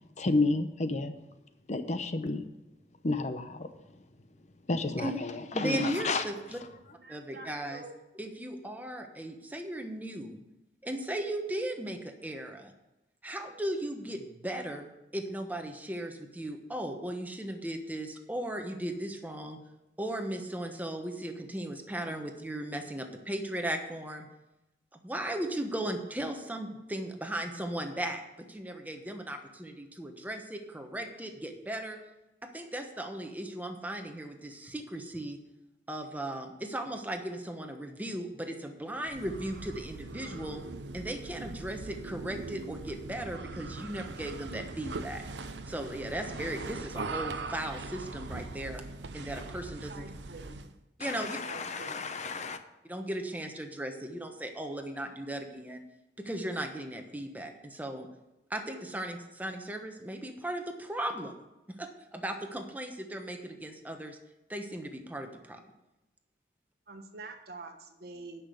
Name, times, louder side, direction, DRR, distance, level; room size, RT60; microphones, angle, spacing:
voice 1, 0.2-1.1 1.7-2.5 3.0-4.0 4.7-6.3 51.0-52.6, left 3 dB, 40° left, 9 dB, 0.8 m, -31 dB
voice 2, 5.5-6.6 7.1-7.8 8.1-10.4 10.8-12.7 13.2-19.6 20.0-24.3 25.0-32.0 32.4-35.4 35.9-40.6 40.9-45.2 45.7-48.8 49.1-50.0 51.0-51.4 52.9-55.8 56.2-58.1 58.5-61.3 61.7-64.2 64.5-65.6, right 1 dB, 10° right, 4 dB, 1.1 m, -37 dB
voice 3, 7.0-8.0 49.9-50.6 51.2-52.0 66.9-68.4, right 3 dB, 65° right, 5 dB, 1.3 m, -46 dB
sound 1, 39.0-50.8, right 3 dB, 85° right, 0.7 m, -41 dB
9.8 x 6.0 x 8.2 m, 0.94 s
head